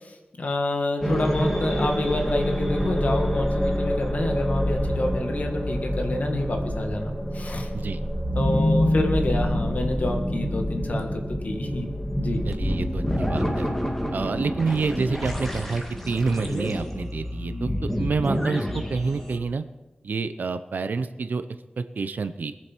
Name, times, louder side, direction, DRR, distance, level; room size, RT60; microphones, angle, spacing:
voice 1, 0.4-7.7 8.3-11.9 12.2-12.4, left 1 dB, 60° left, 3 dB, 1.7 m, -28 dB
sound 1, 1.0-19.4, equal, 10° left, 2.2 m, -27 dB
voice 2, 12.4-13.7 14.1-17.7 18.0-19.6 20.0-21.5 21.8-22.5, right 4 dB, 90° right, 10 dB, 0.6 m, -28 dB
21.0 x 7.6 x 4.5 m, 1.1 s
wide cardioid pair, 90°, 3 cm